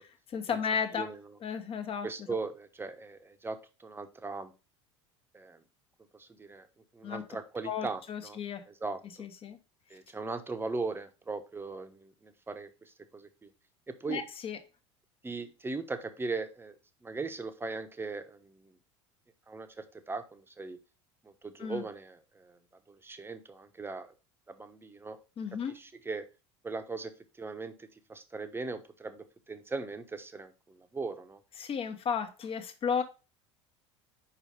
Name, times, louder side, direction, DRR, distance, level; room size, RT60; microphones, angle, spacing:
voice 1, 0.3-1.1 1.4-2.1 7.0-7.2 7.6-8.6 9.2-9.6 14.1-14.6 21.6-21.8 25.4-25.7 31.6-33.0, left 7 dB, 40° left, 7 dB, 1.3 m, -33 dB
voice 2, 0.9-1.4 2.0-4.5 5.3-5.6 6.1-6.7 6.9-8.4 8.7-9.3 9.9-13.5 13.9-14.2 15.2-16.7 17.0-18.8 19.5-20.8 21.2-22.6 22.9-24.1 24.5-25.2 25.6-26.3 26.6-31.4, right 3 dB, 15° right, 9 dB, 1.0 m, -39 dB
5.0 x 4.8 x 5.2 m, 0.31 s
hypercardioid pair, 80°, 15 cm